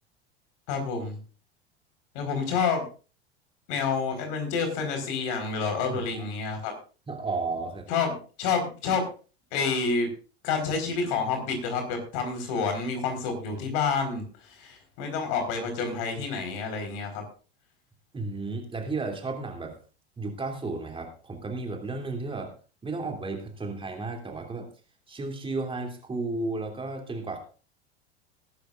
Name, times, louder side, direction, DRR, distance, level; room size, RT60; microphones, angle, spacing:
voice 1, 0.7-1.2 2.1-2.8 3.7-6.7 7.9-9.0 9.5-10.1 10.4-17.2, left 5 dB, 55° left, 5 dB, 4.7 m, -28 dB
voice 2, 5.9-6.3 7.1-7.9 18.1-19.8 20.2-22.5 22.8-24.7 25.1-27.4, right 3 dB, 15° right, 3 dB, 3.0 m, -33 dB
20.0 x 11.5 x 2.5 m, 0.36 s
figure-of-eight pair, 85°, 33 cm